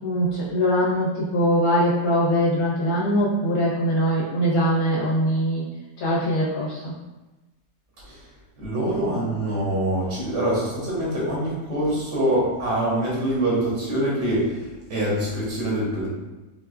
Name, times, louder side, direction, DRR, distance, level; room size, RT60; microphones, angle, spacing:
voice 1, 0.0-5.7 6.0-6.9, equal, 65° left, -7 dB, 1.3 m, -22 dB
voice 2, 8.6-14.6 14.9-16.1, right 1 dB, 85° right, -6 dB, 1.8 m, -24 dB
4.6 x 2.3 x 2.3 m, 1.1 s
omnidirectional pair, 1.8 m